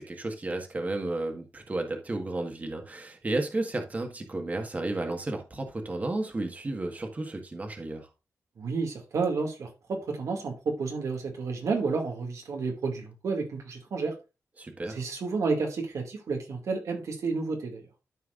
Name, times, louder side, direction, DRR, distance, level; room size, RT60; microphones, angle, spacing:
voice 1, 0.0-8.1 14.6-15.0, right 2 dB, 30° right, 1.6 m, -33 dB
voice 2, 8.6-14.2 14.9-17.8, right 4 dB, 75° right, 2.2 m, -31 dB
13.5 x 4.6 x 2.5 m
wide cardioid pair, 105°, 5 cm